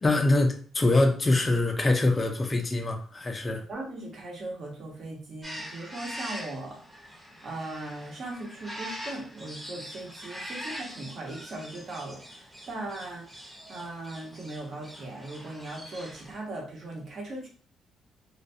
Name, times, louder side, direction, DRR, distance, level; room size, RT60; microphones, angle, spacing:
voice 1, 0.0-3.6, left 2 dB, 25° left, 0.5 m, -24 dB
voice 2, 3.7-17.5, right 2 dB, 55° right, 1.1 m, -39 dB
sound 1, 5.4-16.4, equal, 15° right, 0.9 m, -43 dB
2.4 x 2.3 x 2.7 m
cardioid pair, 90°, 0 cm